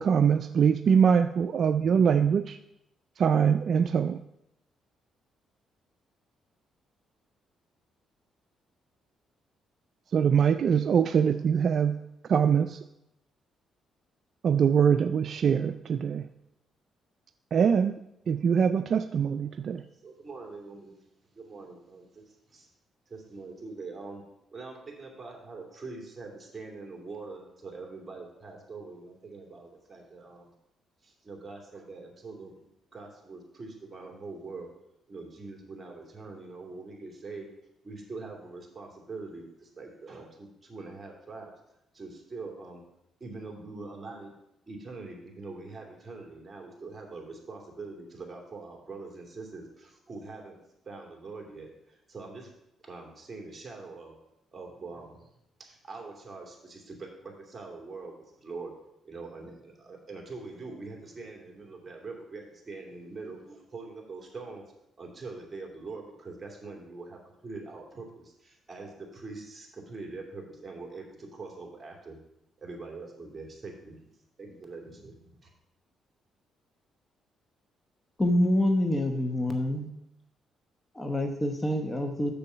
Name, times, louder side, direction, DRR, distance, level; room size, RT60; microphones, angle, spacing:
voice 1, 0.0-2.6 3.2-4.2 10.1-12.0 12.3-12.8 14.4-16.3 17.5-18.0 18.3-19.8, right 7 dB, 55° right, 10 dB, 0.3 m, -23 dB
voice 2, 20.0-21.0 21.3-22.7 23.1-24.2 24.5-30.5 31.0-34.7 35.1-37.5 37.8-41.5 41.9-42.8 43.2-44.3 44.7-50.6 50.8-52.5 52.8-54.1 54.5-55.3 55.6-58.7 59.0-64.6 65.0-72.2 72.6-74.1 74.4-75.5, right 3 dB, 25° right, 0 dB, 2.6 m, -43 dB
voice 3, 78.2-79.9 80.9-82.3, left 1 dB, 20° left, 5 dB, 1.0 m, -26 dB
7.0 x 6.9 x 5.7 m, 0.83 s
cardioid pair, 90°, 0 cm